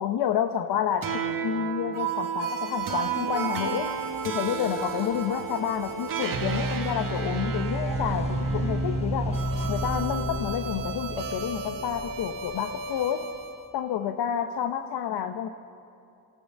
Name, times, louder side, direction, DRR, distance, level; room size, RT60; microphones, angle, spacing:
voice 1, 0.0-3.9 4.2-9.4 9.7-13.3 13.7-15.5, left 9 dB, 70° left, 7 dB, 1.2 m, -29 dB
sound 1, 1.0-13.5, right 3 dB, 55° right, 2.1 m, -31 dB
sound 2, 2.8-9.7, left 1 dB, 15° left, 1.5 m, -45 dB
sound 3, 7.9-13.6, right 3 dB, 70° right, 2.7 m, -40 dB
26.5 x 14.0 x 7.4 m, 2.6 s
supercardioid pair, 65°, 40 cm